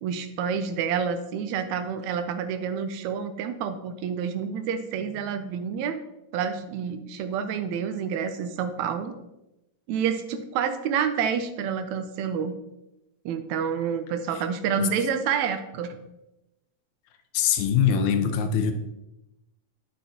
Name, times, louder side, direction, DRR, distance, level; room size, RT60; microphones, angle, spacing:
voice 1, 0.0-6.0 6.3-9.1 9.9-12.6 13.3-16.0, right 7 dB, 80° right, 9 dB, 1.8 m, -28 dB
voice 2, 17.3-18.7, left 7 dB, 80° left, 7 dB, 2.0 m, -23 dB
9.0 x 6.4 x 2.8 m, 0.93 s
omnidirectional pair, 3.4 m